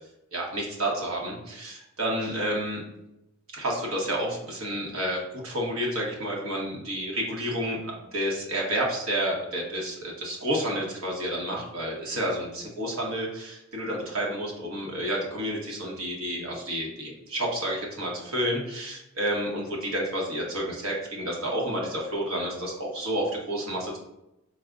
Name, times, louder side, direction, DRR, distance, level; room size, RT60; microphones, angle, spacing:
voice 1, 0.3-2.8 3.5-24.0, right 1 dB, 80° right, -2 dB, 1.0 m, -30 dB
4.6 x 2.1 x 3.6 m, 0.88 s
head